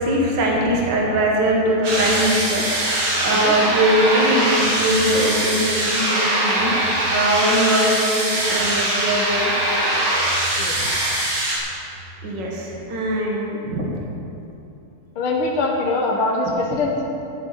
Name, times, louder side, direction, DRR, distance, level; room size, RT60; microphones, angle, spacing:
voice 1, 0.0-2.9 3.2-9.5 10.7-10.8 12.2-13.9, right 1 dB, 60° right, -2 dB, 2.2 m, -21 dB
sound 1, 1.8-11.6, right 1 dB, 75° right, 3.0 m, -22 dB
voice 2, 15.2-17.0, left 2 dB, 85° left, -1 dB, 2.0 m, -22 dB
13.0 x 12.0 x 4.1 m, 2.8 s
omnidirectional pair, 2.3 m